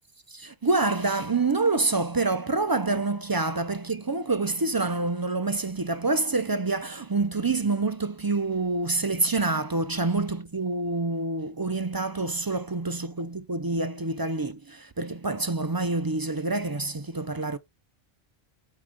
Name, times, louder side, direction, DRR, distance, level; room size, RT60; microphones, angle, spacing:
voice 1, 0.3-17.6, right 3 dB, 35° right, 0.4 m, -27 dB
8.6 x 3.0 x 5.1 m
omnidirectional pair, 1.0 m